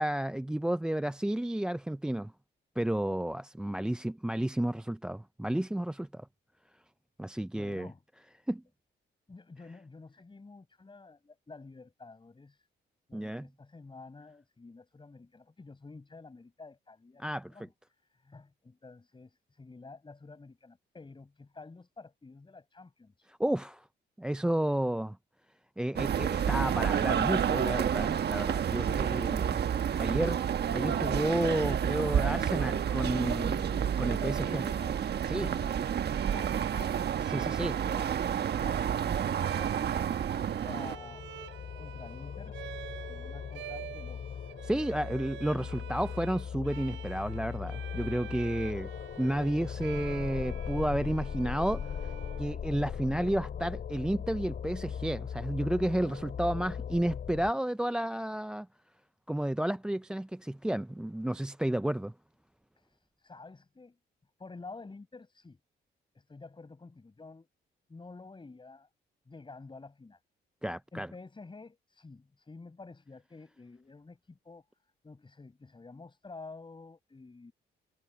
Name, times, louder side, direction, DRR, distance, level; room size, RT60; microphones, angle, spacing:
voice 1, 0.0-2.3 2.8-6.3 7.2-7.9 8.5-8.6 13.1-13.5 17.2-17.5 23.3-23.9 24.2-25.2 25.8-29.6 30.0-30.4 30.7-34.6 35.3-35.5 37.2-37.7 44.6-48.9 49.2-52.1 52.4-58.7 59.3-62.1 70.6-71.1, right 1 dB, 5° right, 0.3 m, -32 dB
voice 2, 3.7-4.0 7.3-8.0 9.3-12.7 13.1-17.2 17.5-17.7 18.1-23.3 32.0-32.5 34.0-35.0 35.4-37.2 37.6-38.3 38.6-41.2 41.8-42.6 42.9-44.5 62.8-64.0 64.4-65.6 66.1-67.5 67.9-68.9 69.3-70.2 70.9-74.6 75.0-77.5, left 3 dB, 25° left, 7.0 m, -50 dB
sound 1, 26.0-41.0, right 8 dB, 55° right, 1.3 m, -30 dB
Bowed string instrument, 36.1-53.0, right 13 dB, 80° right, 3.7 m, -48 dB
sound 2, 40.7-57.5, left 7 dB, 55° left, 4.2 m, -39 dB
cardioid pair, 90°, 20 cm